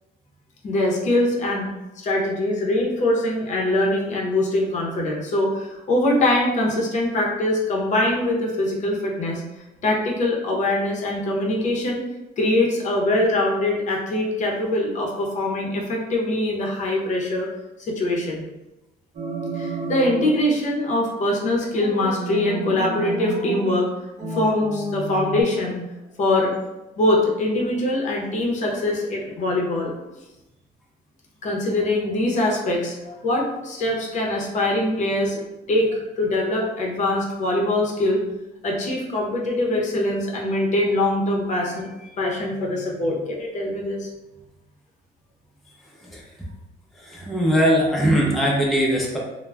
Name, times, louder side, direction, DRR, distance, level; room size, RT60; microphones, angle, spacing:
voice 1, 0.6-1.7 2.0-9.4 9.8-12.0 12.4-17.5 17.8-18.4 19.5-23.9 24.3-25.8 26.2-26.5 27.0-29.9 31.4-35.4 35.7-38.2 38.6-44.1, left 1 dB, 45° left, -1 dB, 0.6 m, -23 dB
sound 1, 19.1-20.4 21.7-23.7 24.2-25.4, right 2 dB, 45° right, 0.8 m, -30 dB
voice 2, 47.1-49.2, equal, ahead, -4 dB, 0.5 m, -20 dB
2.2 x 2.0 x 3.3 m, 1.0 s
cardioid pair, 110°, 17 cm